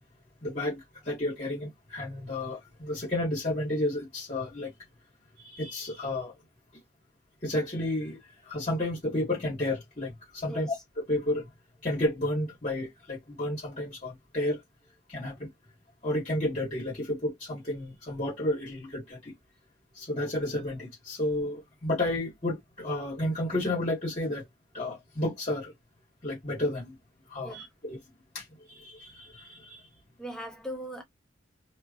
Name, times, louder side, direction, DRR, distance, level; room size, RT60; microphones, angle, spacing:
voice 1, 0.4-4.7 5.4-6.3 7.4-11.5 11.8-14.6 15.1-15.5 16.0-19.3 19.9-24.5 24.7-25.7 26.2-26.9 27.3-28.0 28.3-29.9, left 1 dB, 40° left, 1.9 m, -32 dB
voice 2, 30.2-31.0, equal, 5° left, 1.0 m, -39 dB
3.4 x 3.0 x 2.5 m
head